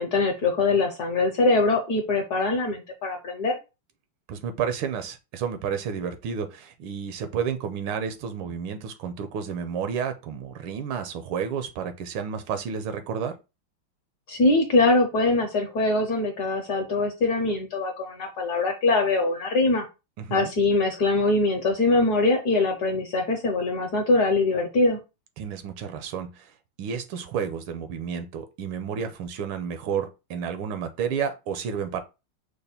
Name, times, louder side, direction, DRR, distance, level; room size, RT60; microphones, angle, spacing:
voice 1, 0.0-3.6 14.3-19.8 20.3-25.0, left 3 dB, 65° left, 1.0 m, -23 dB
voice 2, 4.3-13.4 20.2-20.5 25.4-26.5 26.8-32.0, right 7 dB, 80° right, 1.5 m, -31 dB
5.4 x 2.2 x 4.2 m
omnidirectional pair, 2.4 m